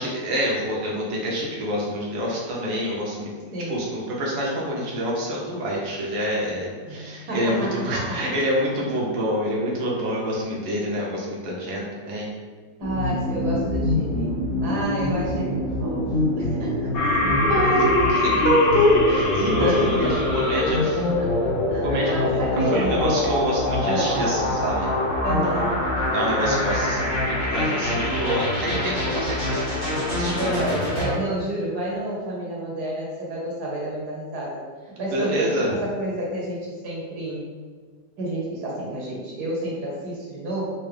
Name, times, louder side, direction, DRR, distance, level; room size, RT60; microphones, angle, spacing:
voice 1, 0.0-3.3 3.7-12.3 17.5-21.0 21.8-24.9 25.4-25.7 26.1-29.6 29.9-30.5 35.1-35.7, equal, 90° right, -4 dB, 1.5 m, -26 dB
voice 2, 6.8-8.3 12.8-17.9 19.5-20.7 21.2-23.1 23.9-24.2 25.2-25.7 30.2-37.4 38.2-40.7, right 1 dB, 70° right, -4 dB, 1.3 m, -30 dB
sound 1, 12.8-31.1, left 1 dB, 35° left, 0.9 m, -25 dB
sound 2, 16.9-21.1, left 2 dB, 75° left, 1.7 m, -25 dB
4.5 x 2.0 x 3.2 m, 1.5 s
omnidirectional pair, 1.9 m